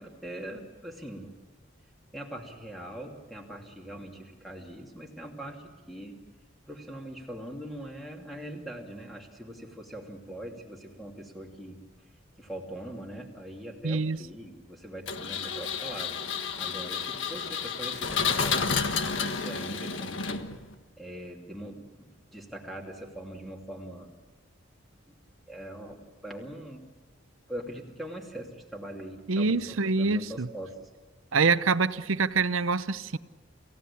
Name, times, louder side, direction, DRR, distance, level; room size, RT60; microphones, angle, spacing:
voice 1, 0.0-1.3 2.1-6.2 6.7-11.8 12.4-20.5 21.0-24.1 25.1-25.2 25.5-26.9 27.5-30.9, right 1 dB, ahead, 1 dB, 2.7 m, -42 dB
voice 2, 13.8-14.2 29.3-30.5 31.3-33.2, right 4 dB, 90° right, 14 dB, 0.8 m, -25 dB
Engine, 15.1-20.7, left 6 dB, 75° left, 1.4 m, -31 dB
28.5 x 16.0 x 8.5 m, 1.3 s
head